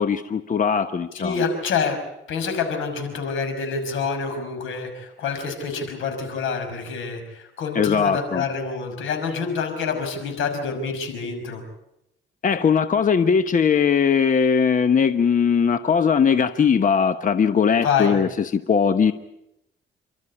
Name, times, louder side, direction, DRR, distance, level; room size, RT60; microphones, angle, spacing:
voice 1, 0.0-1.4 7.7-8.4 12.4-19.1, left 6 dB, 40° left, 11 dB, 1.0 m, -20 dB
voice 2, 1.1-2.0 2.3-11.6 17.8-18.2, left 5 dB, 80° left, 6 dB, 5.8 m, -27 dB
29.5 x 13.0 x 9.9 m, 0.86 s
cardioid pair, 90°, 20 cm